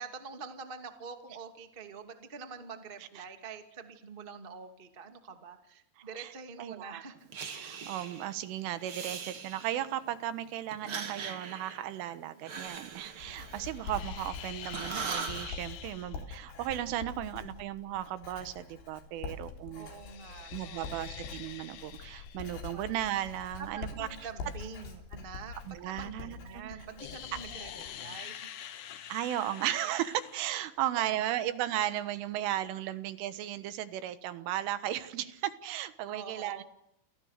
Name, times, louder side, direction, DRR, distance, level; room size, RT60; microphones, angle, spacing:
voice 1, 0.0-7.1 17.0-17.5 19.7-21.2 22.7-22.8 23.6-28.5 30.8-31.2 32.8-32.9 36.1-36.6, right 5 dB, 40° right, 6 dB, 0.7 m, -46 dB
voice 2, 6.0-6.3 6.6-7.0 7.5-19.9 20.5-24.1 25.7-26.8 29.1-36.6, right 12 dB, 80° right, 12 dB, 3.8 m, -35 dB
Breathing, 7.3-8.3 8.8-10.0 10.7-14.3 14.6-15.5, right 6 dB, 60° right, 1.3 m, -41 dB
Writing, 12.6-27.9, left 4 dB, 65° left, 5.7 m, -45 dB
sound 1, 13.7-16.2 19.8-22.5 27.0-30.6, left 10 dB, 85° left, 1.7 m, -46 dB
29.0 x 28.0 x 6.6 m, 0.79 s
omnidirectional pair, 5.6 m